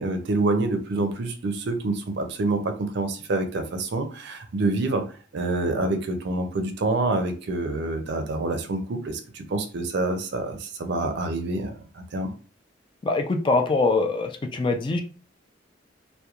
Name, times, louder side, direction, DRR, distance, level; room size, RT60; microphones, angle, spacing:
voice 1, 0.0-5.0 5.3-12.3, right 2 dB, 65° right, 6 dB, 0.5 m, -27 dB
voice 2, 13.0-15.0, left 3 dB, 25° left, 5 dB, 0.3 m, -23 dB
2.9 x 2.1 x 2.3 m, 0.38 s
head